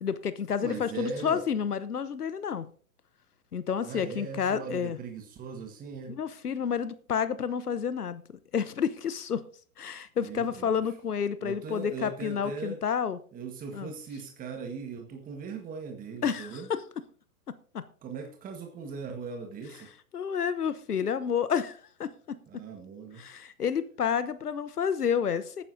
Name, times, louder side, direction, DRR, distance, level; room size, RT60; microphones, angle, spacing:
voice 1, 0.0-2.7 3.5-5.0 6.1-8.2 8.5-9.4 9.8-13.2 13.7-13.9 16.2-16.8 17.7-17.8 20.1-22.6 23.2-25.6, left 7 dB, 85° left, 14 dB, 1.0 m, -30 dB
voice 2, 0.6-1.4 3.8-6.2 10.2-10.8 11.4-12.8 13.3-16.7 18.0-19.9 22.5-23.2, right 5 dB, 20° right, 4 dB, 1.4 m, -39 dB
18.5 x 9.8 x 2.7 m, 0.43 s
hypercardioid pair, 115°, 44 cm